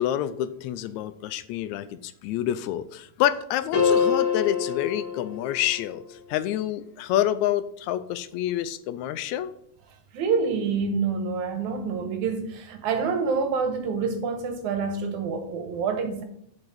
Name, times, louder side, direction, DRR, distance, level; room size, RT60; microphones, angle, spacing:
voice 1, 0.0-9.5, left 12 dB, 80° left, 1.8 m, -28 dB
sound 1, 3.7-6.0, left 6 dB, 50° left, 2.0 m, -25 dB
voice 2, 10.1-16.2, right 5 dB, 85° right, 2.5 m, -27 dB
7.3 x 5.3 x 6.2 m
omnidirectional pair, 3.3 m